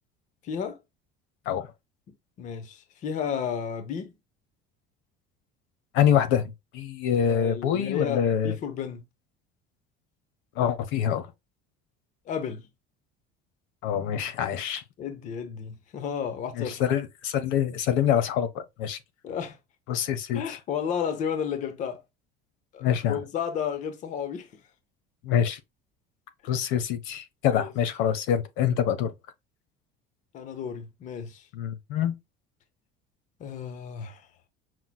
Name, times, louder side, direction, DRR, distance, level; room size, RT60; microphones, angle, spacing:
voice 1, 0.4-0.8 2.4-4.1 7.3-9.0 12.3-12.6 15.0-16.8 19.2-19.6 20.3-22.0 22.7-24.5 27.5-27.7 30.3-31.5 33.4-34.3, left 7 dB, 35° left, 0.8 m, -32 dB
voice 2, 5.9-8.5 10.6-11.3 13.8-14.8 16.6-19.0 19.9-20.6 22.8-23.2 25.2-25.6 26.4-29.1 31.5-32.1, left 9 dB, 70° left, 1.0 m, -25 dB
5.8 x 3.1 x 2.2 m
cardioid pair, 165°, 21 cm